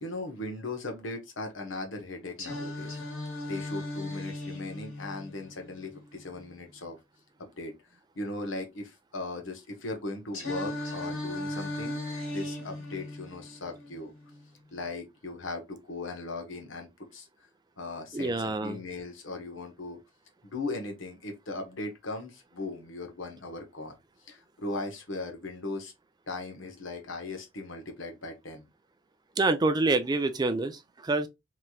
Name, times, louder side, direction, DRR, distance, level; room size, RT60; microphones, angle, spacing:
voice 1, 0.0-3.0 3.5-7.0 7.4-7.7 8.1-12.0 12.3-14.1 14.7-17.3 17.8-20.0 20.4-23.9 24.2-25.9 26.3-28.7, left 2 dB, 70° left, 0.9 m, -38 dB
Singing, 2.4-6.4 10.3-14.4, left 1 dB, 85° left, 1.6 m, -37 dB
voice 2, 18.1-18.8 29.4-31.3, right 2 dB, 20° right, 0.3 m, -27 dB
3.2 x 2.9 x 2.3 m
head